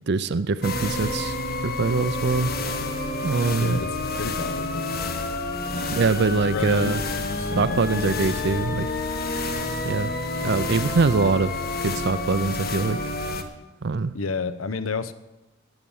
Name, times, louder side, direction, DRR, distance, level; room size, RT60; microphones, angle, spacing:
voice 1, 0.1-1.4 1.6-2.5 3.2-3.8 5.9-7.0 7.6-8.9 9.8-10.1 10.4-11.5 11.8-13.0 13.8-14.1, right 4 dB, 55° right, 14 dB, 0.5 m, -23 dB
sound 1, 0.6-13.4, left 2 dB, 45° left, 1.2 m, -29 dB
sound 2, 2.2-6.1, equal, 10° right, 1.1 m, -43 dB
voice 2, 3.6-5.0 5.7-6.0 6.5-8.1 14.1-15.1, left 4 dB, 75° left, 13 dB, 0.8 m, -31 dB
16.0 x 9.7 x 7.2 m, 0.97 s
head